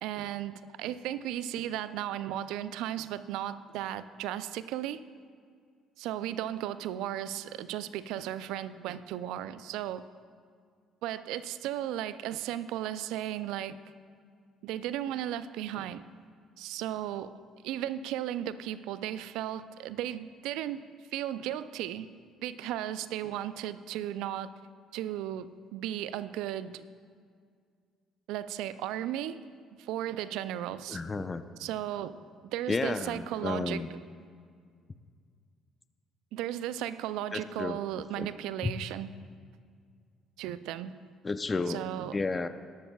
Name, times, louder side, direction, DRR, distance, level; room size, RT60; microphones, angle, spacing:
voice 1, 0.0-5.0 6.0-10.0 11.0-13.8 14.6-16.0 16.6-17.3 17.6-22.1 22.4-24.5 24.9-26.9 28.3-29.4 29.8-31.0 31.6-33.8 36.3-39.1 40.4-40.9 41.7-42.2, right 12 dB, 70° right, 14 dB, 0.4 m, -35 dB
voice 2, 30.9-31.4 32.7-33.9 37.3-37.8 38.2-38.3 38.6-38.7 41.2-41.8 42.1-42.5, left 3 dB, 30° left, 10 dB, 0.7 m, -32 dB
20.5 x 12.0 x 2.4 m, 2.1 s
hypercardioid pair, 50°, 0 cm